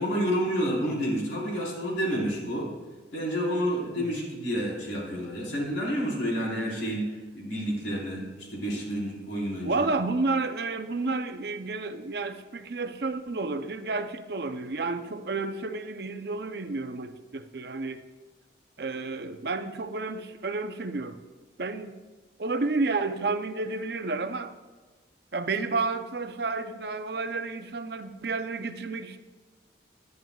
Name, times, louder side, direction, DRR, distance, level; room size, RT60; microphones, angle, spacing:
voice 1, 0.0-2.7 3.1-9.9, equal, 90° left, -3 dB, 4.1 m, -29 dB
voice 2, 9.6-18.0 18.8-21.2 21.6-21.9 22.4-24.5 25.3-29.2, right 3 dB, 60° right, 9 dB, 0.7 m, -31 dB
19.5 x 10.5 x 2.4 m, 1.2 s
head